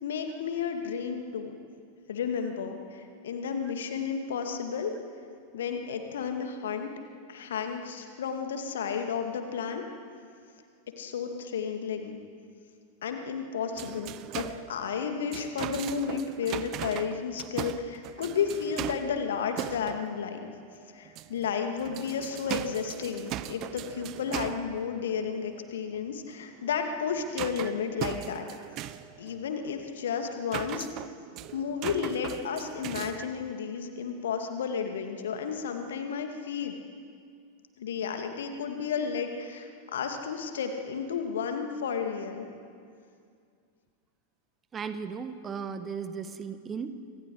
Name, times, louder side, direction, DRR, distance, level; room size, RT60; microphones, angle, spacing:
voice 1, 0.0-1.6 2.1-4.9 5.5-6.9 7.3-9.8 11.0-12.2 13.0-20.5 20.9-28.4 29.2-30.9 31.5-36.8 37.8-42.5, left 6 dB, 60° left, 5 dB, 2.5 m, -32 dB
sound 1, 13.8-20.8 21.1-33.5, right 13 dB, 35° right, 0.9 m, -40 dB
voice 2, 44.7-46.9, right 6 dB, 20° right, 10 dB, 1.4 m, -36 dB
28.0 x 26.0 x 5.1 m, 2.3 s
figure-of-eight pair, 90°, 0 cm